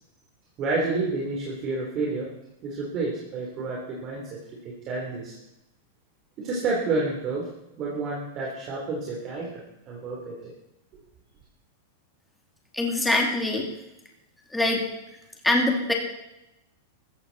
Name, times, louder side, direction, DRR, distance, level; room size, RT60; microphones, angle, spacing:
voice 1, 0.6-2.3 2.6-5.4 6.4-7.5 7.8-10.5, right 3 dB, 30° right, -3 dB, 3.4 m, -30 dB
voice 2, 12.7-13.7 14.5-14.8 15.4-15.9, left 2 dB, 5° left, 1 dB, 2.6 m, -23 dB
15.5 x 14.5 x 4.2 m, 0.90 s
supercardioid pair, 150°, 0 cm